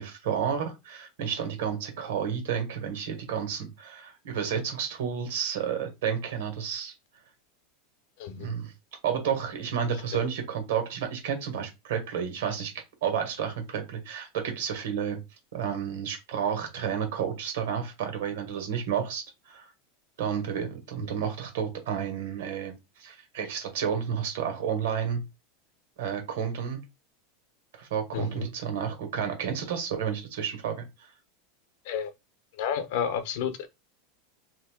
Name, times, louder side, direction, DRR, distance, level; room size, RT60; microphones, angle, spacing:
voice 1, 0.0-6.9 8.4-8.7 9.0-12.7 13.0-15.2 15.5-19.7 20.2-22.7 23.0-25.2 26.0-26.8 27.8-31.1, right 7 dB, 80° right, 1.5 m, -31 dB
voice 2, 28.1-28.5 31.8-32.1 32.6-33.7, left 7 dB, 60° left, 0.7 m, -31 dB
2.8 x 2.6 x 3.6 m
supercardioid pair, 160°, 0 cm